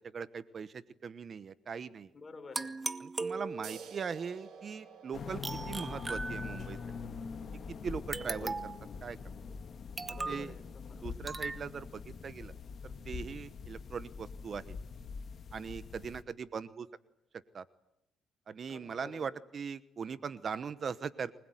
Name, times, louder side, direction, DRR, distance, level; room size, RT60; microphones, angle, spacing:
voice 1, 0.1-2.1 3.0-6.8 7.8-8.5 9.0-9.2 10.1-10.5 11.0-12.5 12.8-14.8 15.5-16.9 17.5-17.6 18.5-21.3, right 6 dB, 45° right, 16 dB, 1.0 m, -40 dB
voice 2, 2.1-2.7 8.2-8.5 10.1-11.1 18.7-19.3, left 4 dB, 30° left, 6 dB, 5.3 m, -50 dB
sound 1, 2.5-4.0 5.4-6.9 8.1-8.9 10.0-10.5 11.3-11.6, right 3 dB, 25° right, 1.5 m, -38 dB
sound 2, 3.6-10.8, right 6 dB, 75° right, 4.3 m, -54 dB
sound 3, 5.1-16.2, left 5 dB, 50° left, 2.1 m, -44 dB
24.5 x 21.0 x 9.3 m, 0.82 s
cardioid pair, 95°, 0 cm